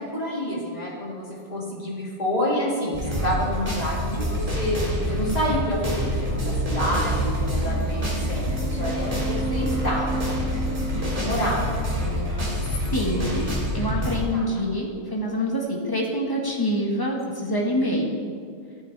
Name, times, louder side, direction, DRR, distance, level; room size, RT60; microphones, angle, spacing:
voice 1, 0.0-4.8 5.1-10.2 10.9-11.8 14.3-14.7 17.8-18.0, equal, 35° left, -5 dB, 2.5 m, -29 dB
sound 1, 2.9-14.2, equal, 30° right, 2.2 m, -26 dB
sound 2, 4.8-11.2, right 2 dB, 80° right, 1.9 m, -35 dB
voice 2, 12.9-13.5 13.7-18.1, equal, 20° left, -1 dB, 1.5 m, -26 dB
14.5 x 8.7 x 3.4 m, 2.2 s
omnidirectional pair, 1.2 m